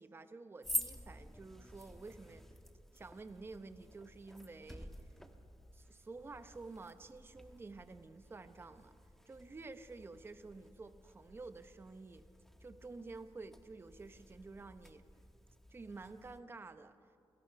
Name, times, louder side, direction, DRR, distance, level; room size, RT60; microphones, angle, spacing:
voice 1, 0.0-2.4 2.9-5.1 5.7-8.9 9.2-12.2 12.6-15.0 15.7-17.0, right 3 dB, 25° right, 10 dB, 0.9 m, -51 dB
sound 1, 0.6-16.4, equal, 5° left, 1.2 m, -49 dB
27.0 x 18.0 x 5.8 m, 2.8 s
wide cardioid pair, 130°, 9 cm